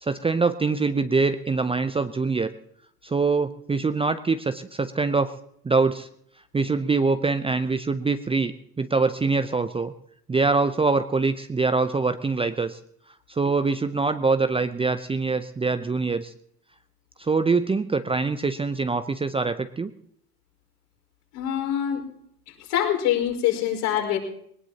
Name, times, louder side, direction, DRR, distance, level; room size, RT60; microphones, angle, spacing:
voice 1, 0.0-2.5 3.0-5.3 5.6-6.1 6.5-9.9 10.3-12.8 13.3-16.3 17.2-19.9, right 4 dB, 10° right, 10 dB, 0.7 m, -24 dB
voice 2, 21.3-22.0 22.7-24.2, left 10 dB, 60° left, 0 dB, 5.2 m, -24 dB
21.5 x 19.0 x 2.9 m, 0.68 s
figure-of-eight pair, 70°, 45 cm